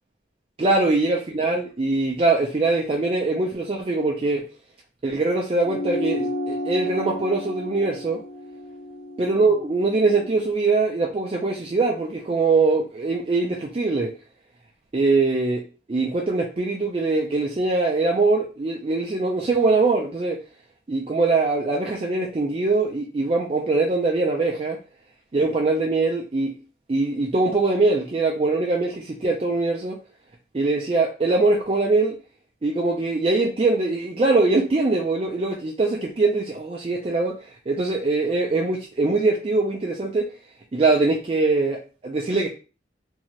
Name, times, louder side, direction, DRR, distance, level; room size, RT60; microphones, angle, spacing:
voice 1, 0.6-4.4 5.0-8.2 9.2-14.1 14.9-15.6 15.9-20.4 20.9-24.8 25.3-26.5 26.9-30.0 30.5-32.2 32.6-40.2 40.7-42.5, right 3 dB, 35° right, -1 dB, 0.4 m, -22 dB
sound 1, 5.6-10.4, left 1 dB, 70° left, 0.6 m, -32 dB
2.7 x 2.4 x 3.0 m, 0.34 s
head